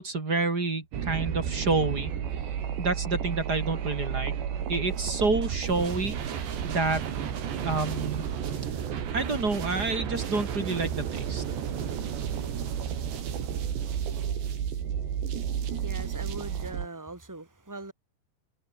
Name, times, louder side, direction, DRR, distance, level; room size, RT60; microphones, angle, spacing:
voice 1, 0.0-2.1 2.8-4.3 4.7-7.0 7.6-8.3 9.1-11.4, right 3 dB, 25° right, 3.0 m, -28 dB
sound 1, 0.9-16.9, right 8 dB, 65° right, 5.2 m, -32 dB
voice 2, 15.8-17.9, right 2 dB, 5° right, 5.3 m, -41 dB
omnidirectional pair, 5.6 m